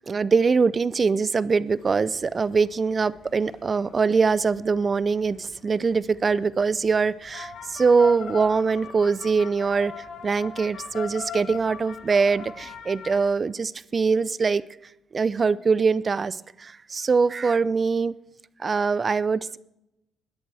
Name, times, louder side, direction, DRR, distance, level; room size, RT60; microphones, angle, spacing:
voice 1, 0.1-14.6 15.1-18.1 18.6-19.6, right 5 dB, 35° right, 18 dB, 0.5 m, -23 dB
sound 1, 1.7-13.2, left 6 dB, 75° left, 1.5 m, -42 dB
20.0 x 11.0 x 3.4 m, 0.86 s
cardioid pair, 90°, 0 cm